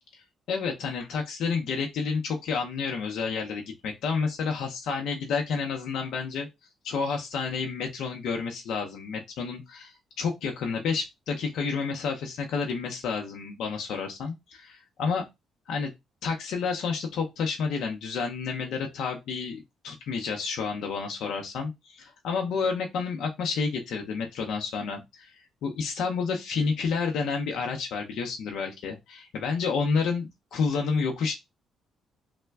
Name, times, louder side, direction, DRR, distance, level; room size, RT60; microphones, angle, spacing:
voice 1, 0.1-6.5 6.8-15.2 15.7-15.9 16.2-31.3, left 5 dB, 80° left, 0.6 m, -30 dB
3.3 x 2.1 x 3.4 m
cardioid pair, 90°, 0 cm